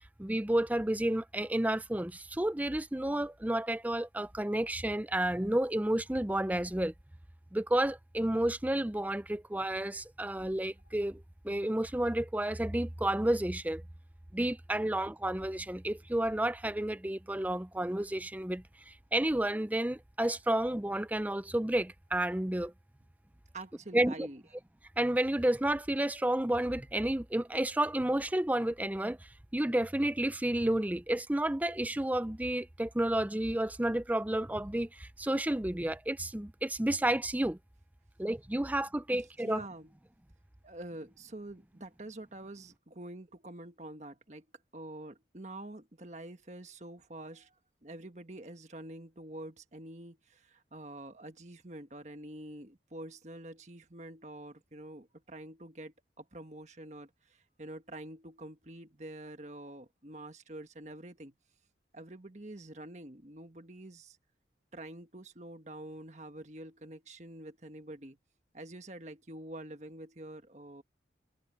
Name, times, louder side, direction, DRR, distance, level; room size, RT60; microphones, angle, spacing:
voice 1, 0.2-6.9 7.5-13.8 14.3-22.7 23.9-24.3 25.0-37.6 38.2-39.6, right 1 dB, 10° right, 0.5 m, -31 dB
voice 2, 23.5-24.4 39.1-39.9 40.6-44.5 44.7-47.5 47.8-61.3 61.9-64.2 64.7-68.2 68.5-70.8, right 1 dB, 40° right, 1.5 m, -46 dB
head